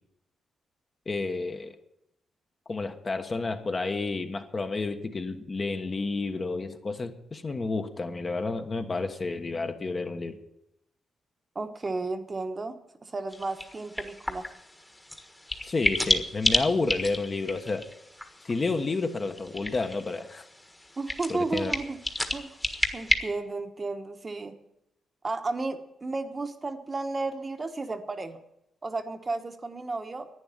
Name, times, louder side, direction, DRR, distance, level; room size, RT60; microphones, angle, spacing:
voice 1, 1.1-1.7 2.7-10.4 15.6-17.9 18.4-20.5 21.3-21.7, left 3 dB, 35° left, 6 dB, 1.3 m, -30 dB
voice 2, 11.5-14.5 21.0-22.0 22.3-22.6 22.9-24.5 25.2-28.4 28.8-30.3, right 3 dB, 30° right, 7 dB, 1.2 m, -33 dB
sound 1, 13.3-23.2, left 1 dB, 10° left, 1.5 m, -32 dB
11.0 x 9.9 x 9.9 m, 0.84 s
cardioid pair, 115°, 0 cm